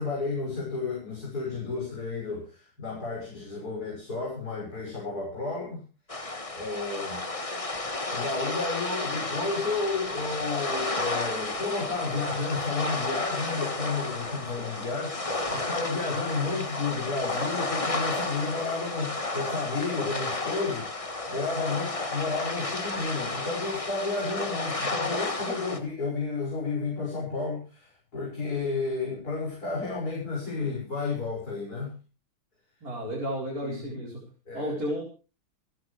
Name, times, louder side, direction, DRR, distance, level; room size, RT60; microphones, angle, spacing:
voice 1, 0.0-5.8 6.5-7.3 8.1-32.0 33.6-34.0 34.5-34.7, left 4 dB, 50° left, -5 dB, 7.0 m, -32 dB
sound 1, 6.1-25.8, left 2 dB, 20° left, 1.4 m, -32 dB
voice 2, 32.8-34.2 34.5-35.0, equal, 45° right, -5 dB, 5.0 m, -32 dB
30.0 x 10.0 x 3.4 m, 0.34 s
omnidirectional pair, 2.2 m